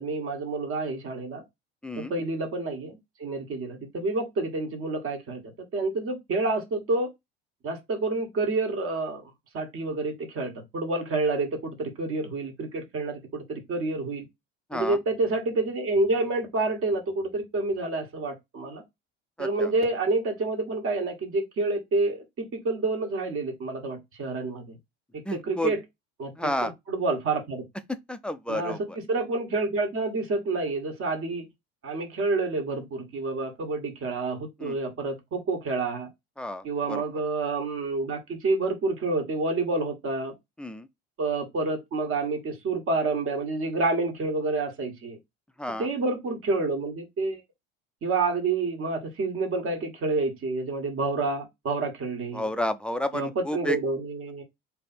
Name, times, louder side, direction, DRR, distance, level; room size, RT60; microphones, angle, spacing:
voice 1, 0.0-1.4 2.0-7.1 7.6-14.3 14.7-18.8 19.4-24.8 25.1-25.8 26.2-27.6 28.5-31.5 31.8-36.1 36.6-40.3 41.2-45.2 45.8-47.4 48.0-52.4 53.1-54.4, right 3 dB, 45° right, 1.6 m, -28 dB
voice 2, 1.8-2.1 14.7-15.0 19.4-19.7 25.2-25.7 26.4-26.7 27.9-29.0 34.6-34.8 36.4-37.0 40.6-40.9 45.6-45.9 52.3-53.8, left 1 dB, 5° left, 0.4 m, -31 dB
3.4 x 2.9 x 4.2 m
supercardioid pair, 90°, 31 cm